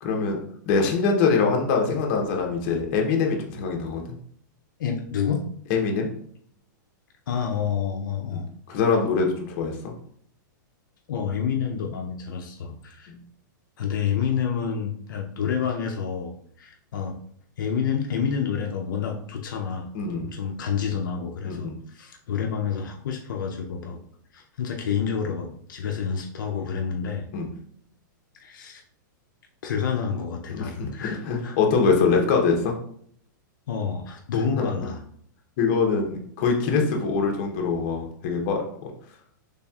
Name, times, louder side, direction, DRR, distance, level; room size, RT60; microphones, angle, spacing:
voice 1, 0.0-0.4 0.7-4.2 5.7-6.1 8.3-9.8 19.9-20.3 21.4-21.8 27.3-27.5 30.5-32.7 34.5-34.7 35.6-38.6, left 5 dB, 40° left, 1 dB, 0.7 m, -23 dB
voice 2, 4.8-5.5 7.3-8.5 11.1-13.1 13.8-17.2 17.6-24.0 24.3-27.3 28.4-28.8 29.6-31.6 33.7-35.0, left 7 dB, 70° left, 2 dB, 0.5 m, -29 dB
4.1 x 3.3 x 2.3 m, 0.63 s
supercardioid pair, 160°, 11 cm